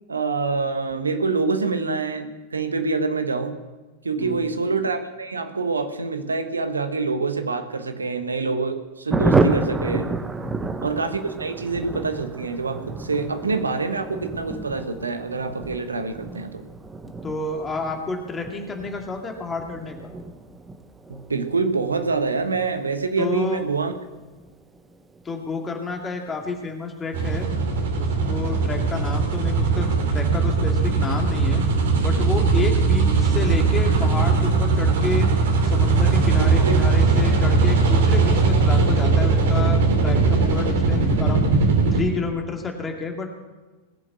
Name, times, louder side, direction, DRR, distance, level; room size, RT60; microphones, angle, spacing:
voice 1, 0.1-3.6 4.0-10.1 10.8-16.7 21.1-23.9 36.4-36.8, right 4 dB, 75° right, 8 dB, 1.3 m, -26 dB
voice 2, 4.1-4.5 10.4-10.8 17.0-20.1 23.2-23.6 25.2-27.5 28.0-31.6 32.0-35.3 35.6-41.5 41.9-43.3, left 4 dB, 15° left, 2 dB, 2.3 m, -30 dB
Thunder, 9.1-25.2 25.5-25.6 25.9-26.0 26.3-26.7, right 3 dB, 15° right, 1.2 m, -30 dB
sound 1, 27.1-42.0, right 4 dB, 60° right, 2.8 m, -19 dB
20.5 x 7.5 x 8.2 m, 1.2 s
figure-of-eight pair, 90°, 0 cm